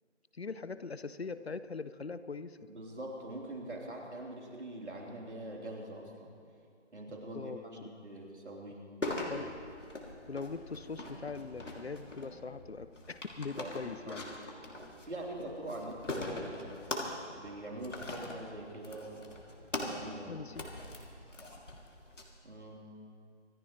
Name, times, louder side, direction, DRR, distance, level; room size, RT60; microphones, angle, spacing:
voice 1, 0.3-2.7 7.1-7.6 9.3-9.4 10.3-14.3 20.3-20.7, left 4 dB, 60° left, 14 dB, 0.6 m, -41 dB
voice 2, 2.7-6.3 6.9-8.9 13.6-14.2 14.8-16.8 17.3-19.3 19.7-20.4 22.4-22.9, right 1 dB, 70° right, -2 dB, 3.8 m, -44 dB
sound 1, 9.0-22.2, left 2 dB, 80° left, 2.8 m, -42 dB
26.0 x 13.5 x 3.2 m, 2.3 s
figure-of-eight pair, 175°, 36 cm